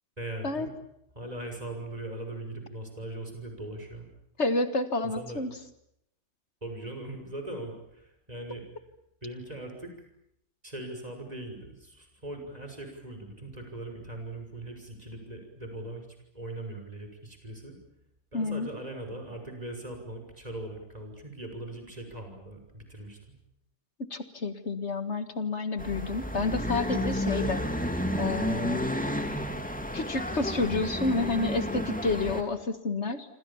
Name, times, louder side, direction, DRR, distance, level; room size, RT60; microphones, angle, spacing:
voice 1, 0.2-0.7 1.1-4.1 5.1-5.4 6.6-8.6 9.2-9.9 10.6-16.1 16.3-17.8 18.3-23.4, right 1 dB, 30° right, 4 dB, 6.4 m, -40 dB
voice 2, 4.4-5.5 18.3-18.7 24.1-27.6 28.2-28.8 29.9-33.4, left 3 dB, 70° left, 10 dB, 2.1 m, -29 dB
sound 1, 25.8-32.4, equal, 5° left, 2.8 m, -31 dB
27.0 x 26.5 x 7.3 m, 0.77 s
omnidirectional pair, 1.2 m